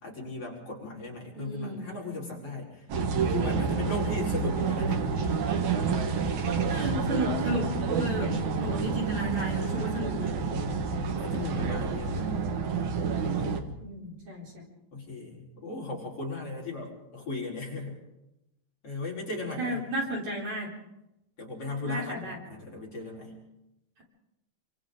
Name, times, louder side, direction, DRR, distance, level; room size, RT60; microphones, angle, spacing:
voice 1, 0.0-2.9 3.3-5.0 8.1-8.6 9.2-10.0 10.9-12.3 13.4-13.8 14.9-18.0 18.8-19.8 21.4-23.3, left 3 dB, 35° left, -4 dB, 5.1 m, -37 dB
voice 2, 1.3-1.9 6.7-10.3 13.8-14.7 19.6-20.7 21.8-22.4, equal, 40° right, -2 dB, 4.9 m, -33 dB
sound 1, 2.9-13.6, right 5 dB, 60° right, 2.3 m, -29 dB
28.5 x 26.0 x 3.9 m, 0.90 s
omnidirectional pair, 5.1 m